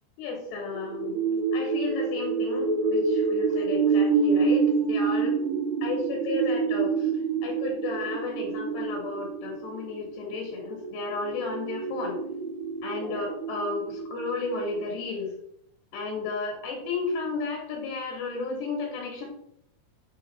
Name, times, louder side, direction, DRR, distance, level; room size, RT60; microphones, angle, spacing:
voice 1, 0.2-1.2 1.5-5.3 5.8-7.1 7.4-12.2 12.8-15.3 15.9-19.3, left 3 dB, 70° left, 0 dB, 3.1 m, -33 dB
sound 1, 0.7-15.0, right 5 dB, 90° right, 3.3 m, -28 dB
9.8 x 3.7 x 4.1 m, 0.74 s
omnidirectional pair, 5.3 m